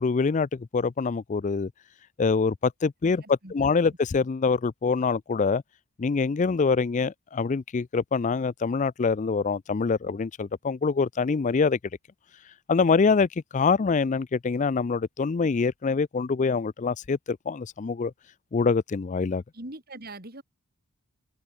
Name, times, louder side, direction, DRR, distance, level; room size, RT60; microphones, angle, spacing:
voice 1, 0.0-1.7 2.2-5.6 6.0-11.8 12.7-18.1 18.5-19.4, left 4 dB, 35° left, 0.4 m, -25 dB
voice 2, 3.2-3.7 19.5-20.4, right 1 dB, 45° right, 4.5 m, -42 dB
head